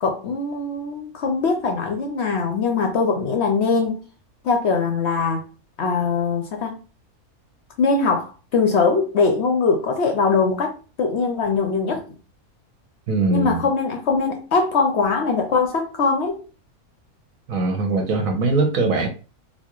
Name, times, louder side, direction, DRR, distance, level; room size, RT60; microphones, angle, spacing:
voice 1, 0.0-4.1 4.4-5.4 5.8-6.8 7.8-12.0 13.3-16.4, left 4 dB, 60° left, 0.7 m, -21 dB
voice 2, 13.1-13.6 17.5-19.1, right 3 dB, 70° right, 1.2 m, -21 dB
4.1 x 2.3 x 3.0 m
omnidirectional pair, 1.5 m